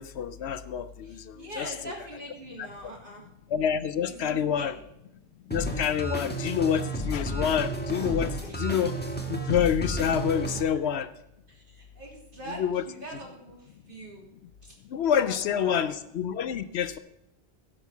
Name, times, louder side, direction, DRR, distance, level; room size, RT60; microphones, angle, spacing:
voice 1, 0.0-1.7 2.8-2.9 3.5-4.8 5.5-8.9 9.3-11.1 12.5-12.8 14.9-17.0, left 8 dB, 70° left, 14 dB, 0.8 m, -27 dB
voice 2, 1.0-3.3 4.1-4.7 8.4-8.6 10.6-10.8 11.5-14.2 14.6-14.7 15.2-16.0, right 1 dB, 50° right, -1 dB, 3.3 m, -43 dB
sound 1, 5.5-10.6, right 1 dB, 10° left, 1.5 m, -32 dB
16.5 x 5.6 x 7.1 m, 0.84 s
omnidirectional pair, 1.2 m